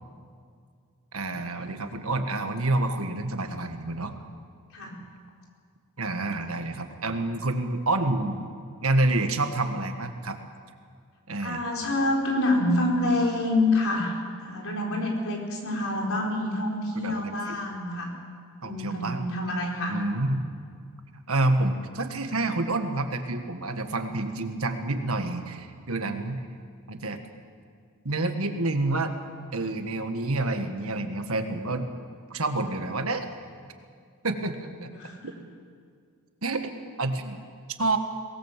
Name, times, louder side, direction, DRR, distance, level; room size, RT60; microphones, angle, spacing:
voice 1, 1.1-4.1 6.0-8.5 8.8-10.4 11.3-11.6 16.9-17.6 18.6-19.3 19.9-20.5 21.3-26.5 26.9-27.2 28.0-29.1 29.5-31.9 32.3-33.3 34.2-34.9 35.2-35.3 36.4-36.7 37.0-37.4 37.8-38.0, right 2 dB, 70° right, 6 dB, 1.7 m, -28 dB
voice 2, 11.4-18.1 18.6-20.0 34.9-35.3, left 1 dB, 65° left, -1 dB, 4.8 m, -27 dB
23.5 x 18.5 x 7.5 m, 2.2 s
head